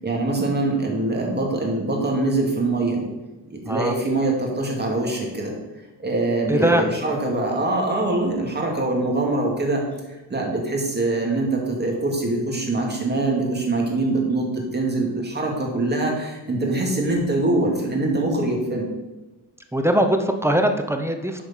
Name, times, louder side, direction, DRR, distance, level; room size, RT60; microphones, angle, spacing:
voice 1, 0.0-3.0 3.5-5.5 6.0-9.8 10.3-18.9, right 2 dB, 25° right, 0 dB, 2.4 m, -23 dB
voice 2, 3.6-4.0 6.5-6.9 19.7-21.4, right 1 dB, 5° right, 6 dB, 0.8 m, -21 dB
8.2 x 5.0 x 5.7 m, 1.1 s
cardioid pair, 95°, 43 cm